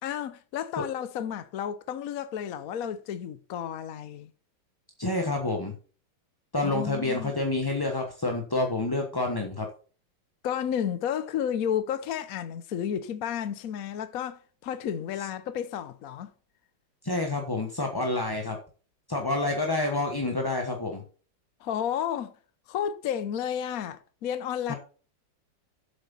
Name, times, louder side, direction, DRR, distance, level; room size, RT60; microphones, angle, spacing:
voice 1, 0.0-4.3 6.6-7.3 10.4-16.3 21.6-22.3 22.7-24.7, left 9 dB, 60° left, 1.0 m, -32 dB
voice 2, 5.0-5.7 6.5-9.7 17.0-18.6 19.1-21.0 24.7-24.8, left 2 dB, 15° left, 1.0 m, -28 dB
7.8 x 7.3 x 5.5 m
omnidirectional pair, 2.1 m